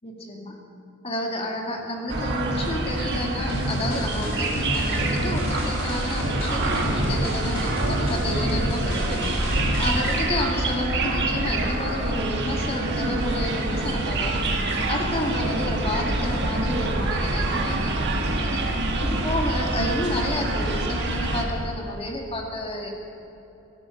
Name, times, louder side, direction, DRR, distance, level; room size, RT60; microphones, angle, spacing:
voice 1, 0.0-0.6 1.0-18.6 19.0-22.9, left 1 dB, 30° left, 1 dB, 2.1 m, -31 dB
sound 1, 2.1-21.4, right 2 dB, 55° right, 1.7 m, -26 dB
sound 2, 3.5-10.2, equal, 70° left, 4.7 m, -30 dB
15.0 x 12.5 x 7.1 m, 2.9 s
head